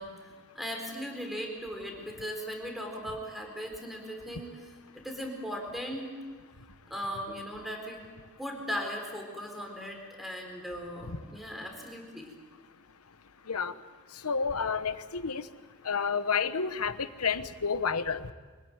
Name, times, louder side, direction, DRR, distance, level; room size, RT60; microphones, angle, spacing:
voice 1, 0.0-4.5 5.0-6.1 6.9-8.1 8.4-12.3, equal, ahead, 2 dB, 4.2 m, -38 dB
voice 2, 14.2-15.4 15.8-18.3, left 5 dB, 90° left, 12 dB, 1.1 m, -30 dB
25.0 x 17.0 x 9.3 m, 1.4 s
head